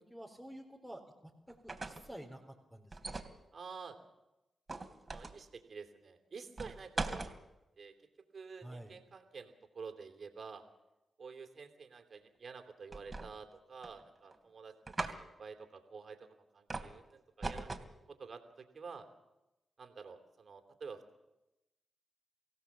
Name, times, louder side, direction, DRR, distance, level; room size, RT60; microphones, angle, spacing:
voice 1, 0.1-3.2 8.6-8.9, right 1 dB, 5° left, 0 dB, 3.9 m, -50 dB
sound 1, 1.5-2.1 2.9-3.3 4.7-5.4 6.6-7.3 12.9-13.5 13.8-14.4 14.9-15.2 16.7-16.9 17.4-17.9, right 3 dB, 35° right, 2.8 m, -40 dB
voice 2, 3.5-4.0 5.1-7.3 7.8-7.9 8.3-10.6 11.2-17.7 18.1-18.4 18.7-19.1 19.8-21.0, right 5 dB, 60° right, 6 dB, 3.1 m, -49 dB
24.5 x 16.5 x 7.4 m, 0.98 s
supercardioid pair, 45°, 0 cm